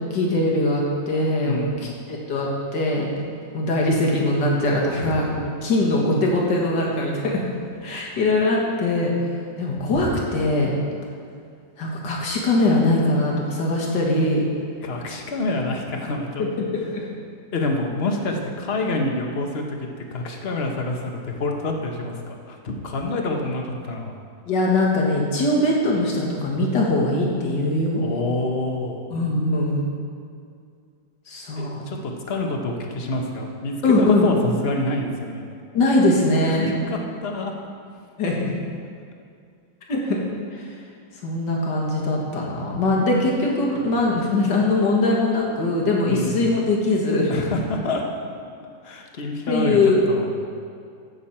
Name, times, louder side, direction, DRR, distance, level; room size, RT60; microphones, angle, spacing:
voice 1, 0.0-1.6 2.1-3.1 3.5-5.3 5.6-7.4 7.8-9.1 9.6-10.7 11.8-14.4 16.4-16.8 24.5-28.0 29.1-29.9 31.3-31.8 33.8-34.3 35.7-36.8 38.2-38.3 39.9-40.2 40.5-40.6 41.2-47.3 49.5-50.0, left 2 dB, 90° left, -2 dB, 2.3 m, -21 dB
voice 2, 1.4-2.0 4.8-5.3 14.8-16.4 17.5-19.8 20.1-24.2 28.0-29.1 31.6-35.4 36.5-37.6 46.1-46.7 47.3-48.0 48.3-48.4 48.8-50.3, left 2 dB, 40° left, 2 dB, 1.1 m, -27 dB
15.5 x 6.8 x 4.3 m, 2.3 s
omnidirectional pair, 1.9 m